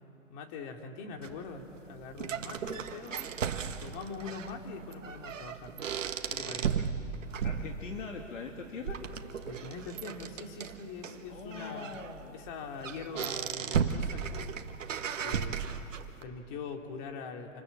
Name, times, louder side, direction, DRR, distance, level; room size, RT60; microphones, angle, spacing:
voice 1, 0.3-3.3 3.8-5.8 6.3-6.8 9.4-12.0 12.3-14.7 15.2-15.6 15.9-17.6, left 4 dB, 35° left, 3 dB, 3.2 m, -43 dB
sound 1, 1.2-16.2, right 7 dB, 70° right, 1.7 m, -36 dB
voice 2, 7.4-9.0 11.3-12.4, left 5 dB, 70° left, 2 dB, 2.8 m, -42 dB
27.5 x 26.5 x 7.5 m, 3.0 s
hypercardioid pair, 125°, 39 cm